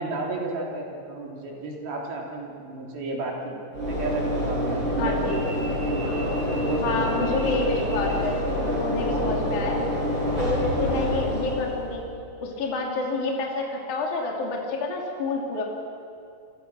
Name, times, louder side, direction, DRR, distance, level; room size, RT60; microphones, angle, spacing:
voice 1, 0.0-7.4 9.2-9.4, right 2 dB, 70° right, -1 dB, 5.3 m, -33 dB
Train / Engine / Alarm, 3.7-12.0, equal, 30° right, 8.1 m, -27 dB
voice 2, 5.0-5.4 6.8-8.4 8.8-9.8 10.4-12.1 12.4-15.6, left 3 dB, 55° left, -1 dB, 4.1 m, -28 dB
29.0 x 24.0 x 6.2 m, 2.6 s
omnidirectional pair, 4.5 m